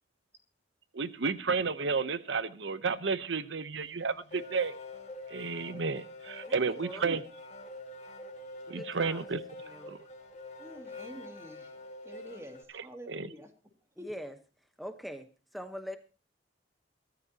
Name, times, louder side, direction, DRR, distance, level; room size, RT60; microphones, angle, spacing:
voice 1, 0.9-4.7 5.3-7.2 8.7-10.1 12.7-13.3, right 4 dB, 90° right, 0.9 m, -32 dB
sound 1, 3.8-12.6, left 2 dB, 40° left, 2.8 m, -46 dB
voice 2, 8.7-9.2 9.7-9.9 14.0-14.3 14.8-15.3 15.5-16.0, equal, ahead, 1.1 m, -41 dB
voice 3, 10.6-11.7 12.0-13.5 14.0-14.1, equal, 15° right, 2.6 m, -48 dB
22.0 x 14.0 x 2.9 m
head